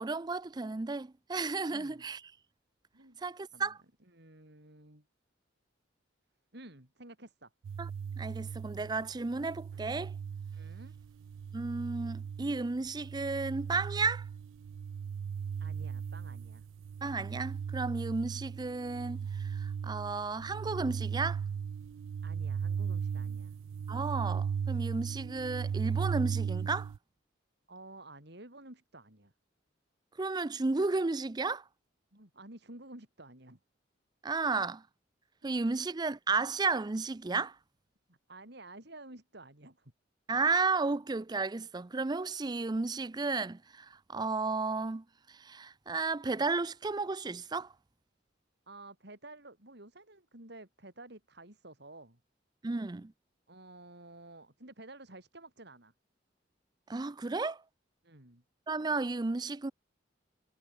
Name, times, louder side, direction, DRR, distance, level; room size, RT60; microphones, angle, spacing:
voice 1, 0.0-2.2 3.2-3.8 7.8-7.9 8.2-10.1 11.5-14.2 17.0-21.4 23.9-26.9 30.2-31.6 34.2-34.8 35.4-37.6 40.3-47.7 52.6-53.1 56.9-57.6 58.7-59.7, right 3 dB, 20° right, 0.5 m, -33 dB
voice 2, 1.7-2.0 2.9-3.2 3.5-3.8 4.1-5.1 6.5-7.5 10.5-11.0 15.6-16.7 22.2-23.5 27.7-29.3 32.1-33.6 35.4-35.5 38.1-39.9 48.7-52.2 53.5-55.9 58.0-58.4, right 2 dB, 60° right, 5.7 m, -52 dB
sound 1, 7.6-27.0, right 7 dB, 80° right, 0.3 m, -37 dB
head